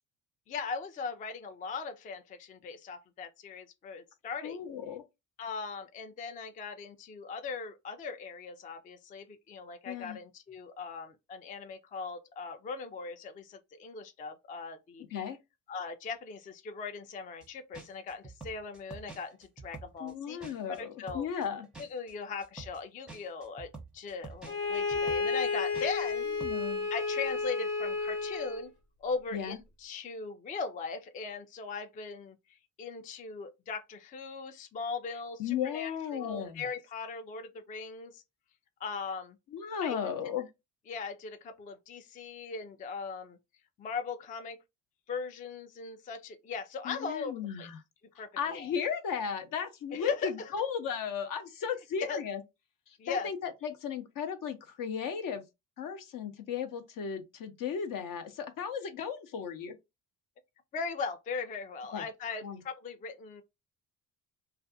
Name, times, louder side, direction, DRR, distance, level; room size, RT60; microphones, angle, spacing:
voice 1, 0.5-4.6 5.4-15.1 15.7-20.4 20.7-21.3 21.8-26.3 26.9-28.7 29.0-38.2 38.8-39.4 39.8-40.0 40.9-43.4 43.8-44.6 45.1-47.7 48.2-48.7 49.9-50.5 52.1-52.2 53.0-53.3 60.7-63.4, left 4 dB, 20° left, 0.3 m, -39 dB
voice 2, 4.4-5.0 9.9-10.2 15.1-15.4 20.0-21.7 26.4-26.9 29.3-29.6 35.4-36.6 39.5-40.5 46.8-47.8 48.4-52.4 52.9-55.4 55.8-59.8 61.9-62.0 62.4-62.6, left 7 dB, 55° left, 0.7 m, -35 dB
sound 1, 17.4-17.5 17.7-20.8 21.1-26.1 26.4-26.6, right 4 dB, ahead, 0.8 m, -47 dB
Bowed string instrument, 24.4-28.7, left 4 dB, 75° left, 1.3 m, -32 dB
2.4 x 2.3 x 2.5 m
supercardioid pair, 70°, 40 cm